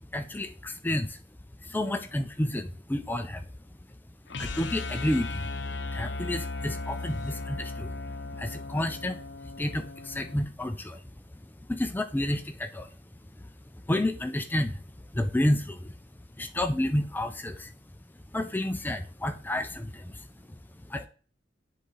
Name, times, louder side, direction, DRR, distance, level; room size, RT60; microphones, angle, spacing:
voice 1, 0.1-1.2 1.7-3.4 4.4-5.4 5.9-7.9 8.4-9.2 9.6-11.0 11.7-12.9 13.9-14.8 15.1-15.9 16.4-17.7 18.3-20.1 20.9-21.1, left 1 dB, 10° left, 0.4 m, -30 dB
sound 1, 4.3-10.4, left 3 dB, 70° left, 0.7 m, -36 dB
10.0 x 3.7 x 3.2 m
head